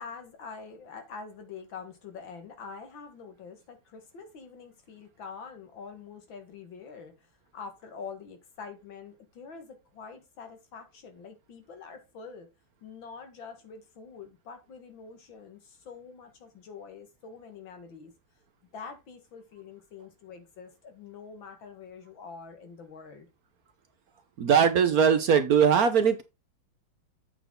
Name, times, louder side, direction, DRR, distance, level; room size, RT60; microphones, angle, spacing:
voice 1, 0.0-12.5 12.8-18.1 18.7-23.3, left 5 dB, 75° left, 2.4 m, -45 dB
voice 2, 24.4-26.2, right 7 dB, 60° right, 1.1 m, -21 dB
8.1 x 6.1 x 3.7 m
omnidirectional pair, 2.1 m